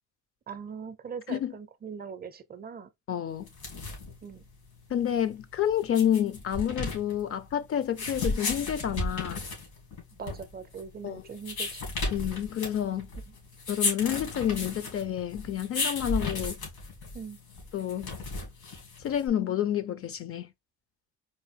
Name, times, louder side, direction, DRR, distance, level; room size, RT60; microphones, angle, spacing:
voice 1, 0.5-2.9 4.2-4.5 10.2-11.8 13.3-13.4 17.1-17.4, right 6 dB, 30° right, 0.5 m, -41 dB
voice 2, 3.1-3.5 4.9-9.4 11.0-11.2 12.1-13.1 13.7-16.6 17.7-18.1 19.0-20.5, left 10 dB, 45° left, 0.5 m, -29 dB
sound 1, 3.4-19.3, left 3 dB, 80° left, 2.3 m, -35 dB
4.2 x 2.5 x 3.3 m
cardioid pair, 125°, 30 cm